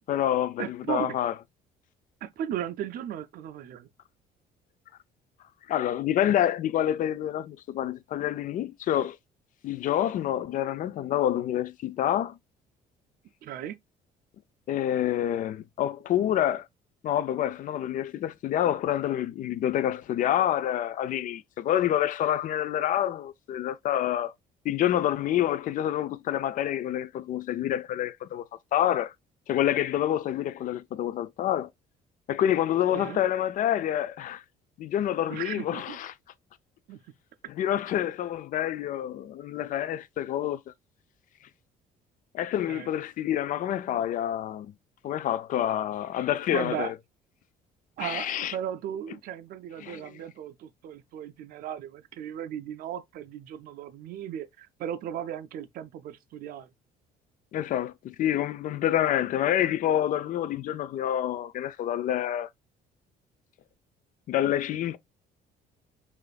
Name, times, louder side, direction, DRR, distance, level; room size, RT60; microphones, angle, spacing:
voice 1, 0.1-1.3 5.7-9.2 9.6-12.4 14.7-16.7 17.0-24.3 24.6-28.4 28.7-29.1 29.5-31.7 32.3-34.4 34.8-36.1 37.6-40.6 42.3-44.7 45.0-46.9 48.0-48.5 49.8-50.0 57.5-62.5 64.3-65.0, left 11 dB, 50° left, 0.4 m, -27 dB
voice 2, 0.6-1.2 2.2-3.9 13.4-13.8 32.9-33.2 35.3-36.0 36.9-37.0 42.7-42.9 46.5-46.9 48.0-56.7, right 10 dB, 60° right, 0.4 m, -36 dB
4.9 x 2.5 x 2.3 m
cardioid pair, 110°, 17 cm